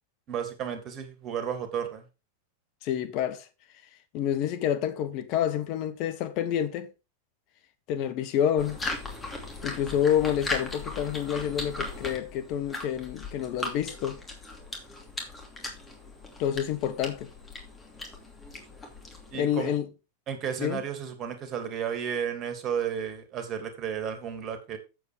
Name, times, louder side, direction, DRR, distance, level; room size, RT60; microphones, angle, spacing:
voice 1, 0.3-2.0 19.3-19.7 20.3-24.8, right 8 dB, 35° right, 2.6 m, -33 dB
voice 2, 2.8-3.5 4.1-6.9 7.9-8.8 9.6-14.2 16.4-17.3 19.3-19.9 20.6-20.8, left 10 dB, 40° left, 1.0 m, -28 dB
sound 1, 8.6-19.4, left 2 dB, 15° left, 2.9 m, -38 dB
8.3 x 7.6 x 5.0 m
figure-of-eight pair, 90°, 0 cm